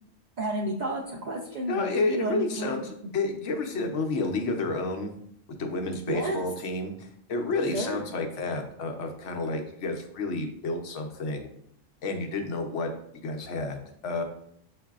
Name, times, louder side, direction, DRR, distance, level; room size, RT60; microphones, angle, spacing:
voice 1, 0.4-2.7 3.0-3.1 6.1-6.4 7.7-8.0, right 1 dB, 65° right, -1 dB, 0.4 m, -31 dB
voice 2, 1.7-5.1 5.6-11.5 12.0-12.9 13.2-14.2, left 3 dB, 75° left, 4 dB, 1.0 m, -30 dB
7.2 x 2.6 x 2.3 m, 0.70 s
omnidirectional pair, 1.3 m